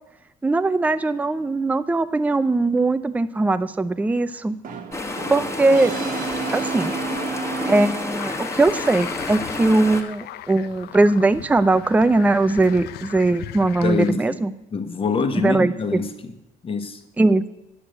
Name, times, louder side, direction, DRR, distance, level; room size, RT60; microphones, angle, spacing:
voice 1, 0.4-4.6 5.3-5.9 6.5-6.9 7.7-14.5 15.4-16.0 17.2-17.5, right 2 dB, 10° right, 13 dB, 0.5 m, -20 dB
Brass instrument, 4.6-8.5, right 5 dB, 55° right, 1.4 m, -31 dB
sound 1, 4.9-10.0, left 2 dB, 15° left, 1.5 m, -30 dB
sound 2, 8.1-14.1, left 12 dB, 75° left, 0.6 m, -38 dB
voice 2, 13.8-14.4 14.7-16.3 16.6-17.0, left 5 dB, 35° left, 7 dB, 1.3 m, -25 dB
9.9 x 6.9 x 7.9 m, 0.93 s
cardioid pair, 110°, 17 cm